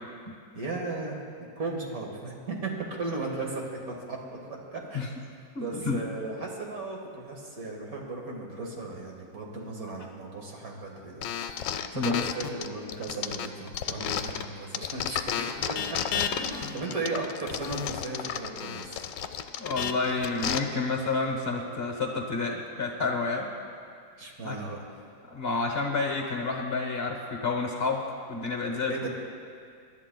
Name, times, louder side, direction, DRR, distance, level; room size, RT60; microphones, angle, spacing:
voice 1, 0.5-1.2 1.6-4.2 4.5-5.0 5.6-11.6 11.9-15.8 16.1-19.0 24.2-24.8 28.9-29.1, right 3 dB, 50° right, -1 dB, 2.0 m, -36 dB
voice 2, 5.5-6.1 11.9-12.2 16.3-16.5 19.6-23.5 24.4-24.6 25.3-29.1, left 3 dB, 40° left, 2 dB, 1.0 m, -30 dB
sound 1, 11.2-14.5 14.7-20.6, left 9 dB, 75° left, 1.2 m, -32 dB
24.0 x 11.5 x 2.3 m, 2.3 s
omnidirectional pair, 2.0 m